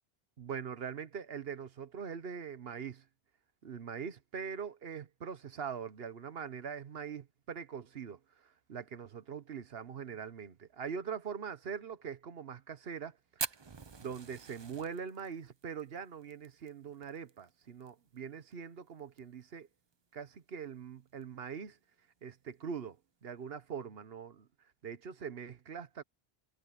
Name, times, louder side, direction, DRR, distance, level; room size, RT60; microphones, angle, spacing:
voice 1, 0.4-3.0 3.6-13.6 14.0-19.7 20.1-21.8 22.2-23.0 23.2-24.5 24.8-26.0, right 7 dB, 70° right, 1.2 m, -42 dB
Fire, 13.4-17.9 18.1-18.2 18.5-18.6 19.0-19.4 19.9-20.0 21.1-21.2, right 5 dB, 30° right, 0.6 m, -42 dB
omnidirectional pair, 1.1 m